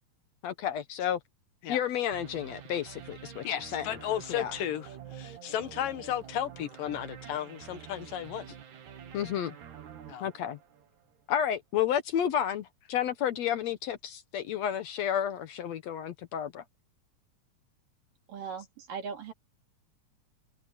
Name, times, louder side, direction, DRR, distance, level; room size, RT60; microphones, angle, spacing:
voice 1, 0.4-1.2 1.7-4.0 4.3-4.5 9.1-9.6 10.2-10.6 11.3-16.6, left 9 dB, 70° left, 1.9 m, -31 dB
sound 1, 2.1-11.2, right 9 dB, 65° right, 3.1 m, -48 dB
voice 2, 3.4-8.5 10.1-10.3, left 11 dB, 90° left, 3.1 m, -34 dB
voice 3, 18.3-19.3, right 6 dB, 80° right, 5.2 m, -39 dB
omnidirectional pair, 3.7 m